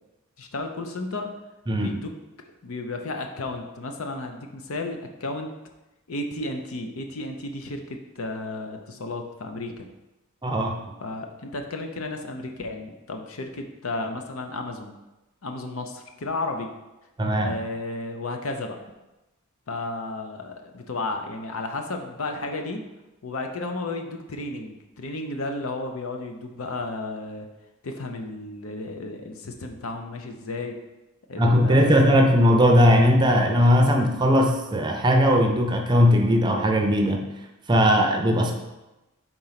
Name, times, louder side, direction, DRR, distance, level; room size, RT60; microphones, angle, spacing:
voice 1, 0.4-1.3 1.7-2.1 2.6-5.5 6.1-9.9 11.0-14.9 15.4-16.7 17.4-18.8 19.7-22.8 23.2-27.5 27.8-30.8 31.3-32.3, left 2 dB, 70° left, 4 dB, 0.7 m, -33 dB
voice 2, 1.7-2.0 10.4-10.8 17.2-17.5 31.4-37.2 37.7-38.5, equal, 20° right, 3 dB, 0.6 m, -19 dB
4.5 x 3.9 x 5.7 m, 1.0 s
head